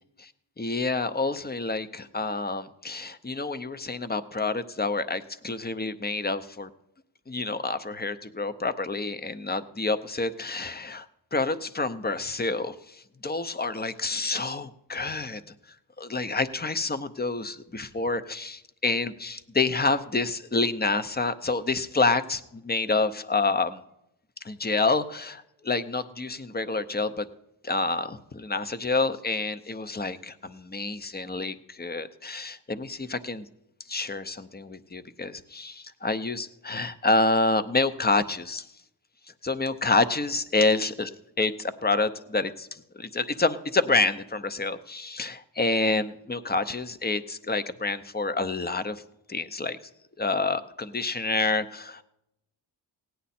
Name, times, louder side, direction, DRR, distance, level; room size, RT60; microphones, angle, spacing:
voice 1, 0.6-6.7 7.3-11.1 11.3-15.4 16.0-23.8 24.4-27.3 27.6-33.5 33.9-38.7 39.4-41.1 41.4-49.0 49.3-49.8 50.2-52.0, left 3 dB, 25° left, 12 dB, 0.7 m, -28 dB
17.0 x 9.4 x 4.3 m, 0.83 s
cardioid pair, 65°, 42 cm